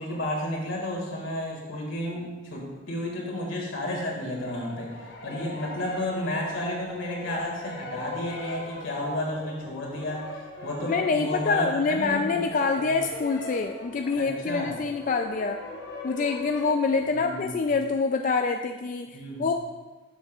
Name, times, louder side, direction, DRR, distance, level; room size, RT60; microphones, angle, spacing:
voice 1, 0.0-4.9 5.2-12.5 12.8-13.0 14.2-14.7 17.1-17.6 19.1-19.5, left 1 dB, 85° left, -2 dB, 2.1 m, -32 dB
sound 1, 4.3-17.5, left 2 dB, 60° left, 1.1 m, -41 dB
voice 2, 10.9-15.6 16.0-19.5, left 4 dB, 40° left, 5 dB, 0.3 m, -26 dB
11.5 x 7.1 x 2.4 m, 1.3 s
head